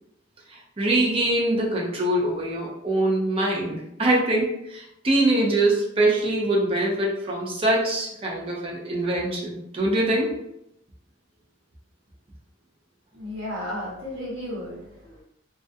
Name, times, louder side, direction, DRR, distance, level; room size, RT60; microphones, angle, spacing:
voice 1, 0.5-10.3, right 1 dB, 30° right, -3 dB, 0.5 m, -23 dB
voice 2, 13.1-15.2, left 1 dB, 75° right, -5 dB, 1.0 m, -34 dB
2.3 x 2.1 x 2.5 m, 0.79 s
head